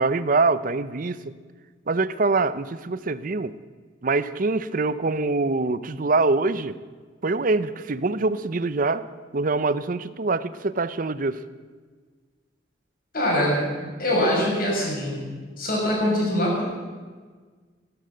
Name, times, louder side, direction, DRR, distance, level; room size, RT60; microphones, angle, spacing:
voice 1, 0.0-1.3 1.9-3.5 4.0-6.8 7.2-9.0 9.3-11.4, right 3 dB, 45° right, 15 dB, 0.6 m, -24 dB
voice 2, 13.1-13.7 14.0-15.2 15.6-16.7, equal, 50° left, -2 dB, 6.0 m, -23 dB
15.0 x 12.0 x 7.9 m, 1.5 s
head